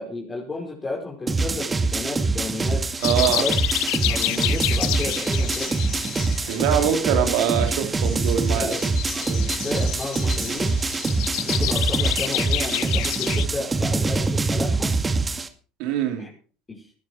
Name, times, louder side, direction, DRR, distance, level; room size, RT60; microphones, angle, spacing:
voice 1, 0.0-2.9 3.3-3.5 3.9-5.7 8.5-8.8 9.1-9.2 9.6-10.8 11.5-14.9 16.2-16.3 16.7-16.9, left 2 dB, 25° left, 5.2 m, -32 dB
sound 1, 1.3-15.5, right 3 dB, 20° right, 2.3 m, -24 dB
sound 2, 3.0-13.5, left 18 dB, 65° left, 0.9 m, -29 dB
voice 2, 3.0-3.5 6.5-8.7 9.3-9.5 15.8-16.3, right 9 dB, 65° right, 3.6 m, -23 dB
20.5 x 11.5 x 4.8 m
hypercardioid pair, 70°, 0 cm